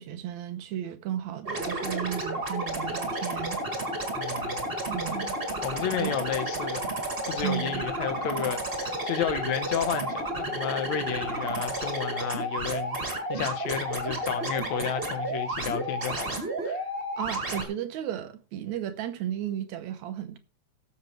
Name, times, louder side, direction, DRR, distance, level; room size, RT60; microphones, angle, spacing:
voice 1, 0.0-3.6 4.9-5.4 6.0-6.2 7.4-7.8 17.2-20.4, right 11 dB, 80° right, 2.2 m, -34 dB
sound 1, 1.4-17.6, right 1 dB, 20° right, 1.9 m, -32 dB
voice 2, 4.2-4.6 5.6-6.9 7.3-16.8, left 8 dB, 75° left, 2.4 m, -32 dB
18.0 x 7.1 x 3.2 m
omnidirectional pair, 3.3 m